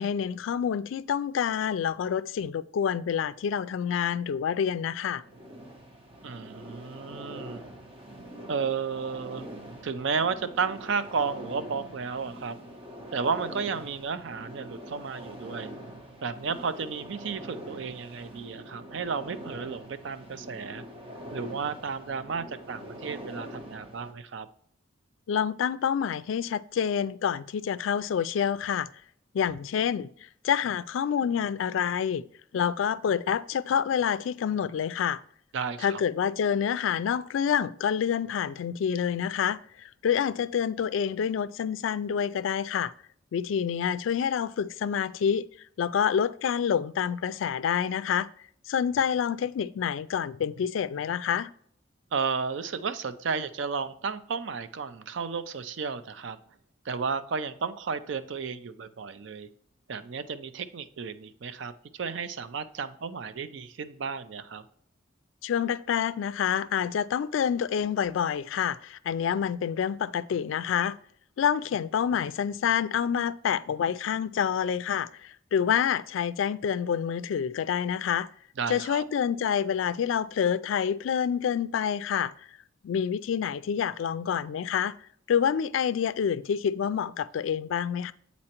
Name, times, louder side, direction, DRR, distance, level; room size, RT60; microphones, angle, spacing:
voice 1, 0.0-5.2 25.3-28.9 29.3-30.1 30.4-32.3 32.5-35.2 35.8-42.9 43.3-45.5 45.8-48.3 48.7-51.5 65.4-71.0 71.4-78.3 78.7-82.3 82.8-84.9 85.3-88.1, left 8 dB, 80° left, 0.3 m, -27 dB
sound 1, 5.2-24.1, right 1 dB, 30° right, 0.7 m, -44 dB
voice 2, 6.2-7.6 8.5-9.4 9.8-12.6 13.1-15.7 16.2-20.8 21.3-24.5 35.5-36.0 52.1-56.4 56.8-59.5 59.9-64.6 78.6-79.0, right 5 dB, 70° right, 0.4 m, -33 dB
8.7 x 4.2 x 2.9 m
head